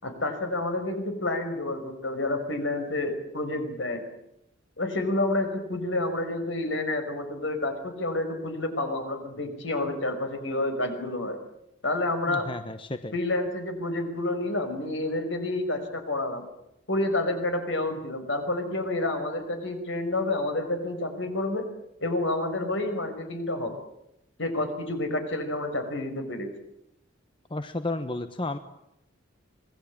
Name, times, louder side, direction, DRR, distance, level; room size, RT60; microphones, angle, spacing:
voice 1, 0.0-4.1 4.8-11.4 11.8-12.5 13.1-16.4 16.9-21.7 22.0-23.8 24.4-26.5, left 2 dB, 70° left, 7 dB, 5.5 m, -29 dB
voice 2, 12.3-13.1 27.5-28.6, left 2 dB, 25° left, 9 dB, 1.1 m, -32 dB
26.5 x 19.5 x 8.8 m, 0.81 s
head